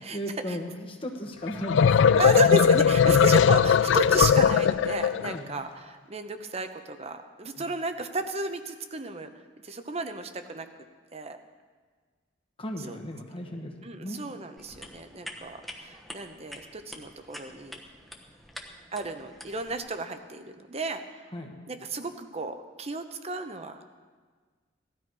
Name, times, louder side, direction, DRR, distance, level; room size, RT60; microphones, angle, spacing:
voice 1, 0.0-2.2 5.3-5.5 7.5-7.6 12.6-14.2 21.3-21.6, equal, 30° left, 2 dB, 1.3 m, -36 dB
sound 1, 1.5-5.4, left 7 dB, 75° left, 0.3 m, -19 dB
voice 2, 2.2-9.3 9.6-10.7 11.1-11.4 12.9-13.0 13.8-17.8 18.9-21.3 21.7-23.9, right 3 dB, 35° right, 8 dB, 0.9 m, -33 dB
sound 2, 14.6-19.8, equal, ahead, 1.1 m, -45 dB
17.0 x 12.5 x 4.8 m, 1.5 s
head